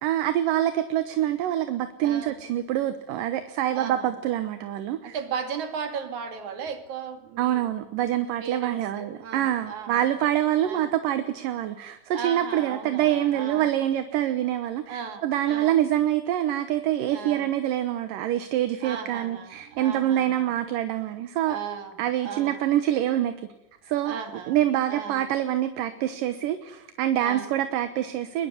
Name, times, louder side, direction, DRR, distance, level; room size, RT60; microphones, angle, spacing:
voice 1, 0.0-5.2 7.4-21.6 22.0-23.3 23.8-24.2 24.5-28.5, right 12 dB, 75° right, 10 dB, 2.7 m, -26 dB
voice 2, 2.0-2.4 3.7-4.1 5.0-7.7 8.4-10.1 10.6-10.9 12.1-13.7 14.9-15.8 17.1-17.5 18.8-20.5 21.5-22.6 24.0-24.6 24.9-25.3 27.2-27.5, right 6 dB, 60° right, 7 dB, 3.7 m, -36 dB
22.5 x 21.5 x 9.7 m, 0.88 s
omnidirectional pair, 4.0 m